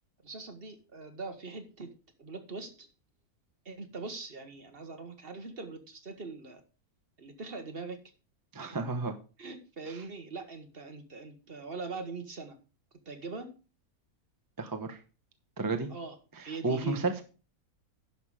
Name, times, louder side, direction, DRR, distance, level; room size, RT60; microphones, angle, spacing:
voice 1, 0.2-1.9 2.2-2.9 3.6-6.6 7.2-8.0 8.6-8.8 9.4-12.6 13.1-13.5 15.9-16.2 16.4-17.2, right 3 dB, 40° right, 7 dB, 1.4 m, -42 dB
voice 2, 8.5-9.1 9.9-10.0 14.6-15.0 15.6-15.9 16.4-17.2, right 3 dB, 20° right, 5 dB, 0.8 m, -32 dB
11.0 x 5.8 x 4.8 m, 0.35 s
omnidirectional pair, 1.6 m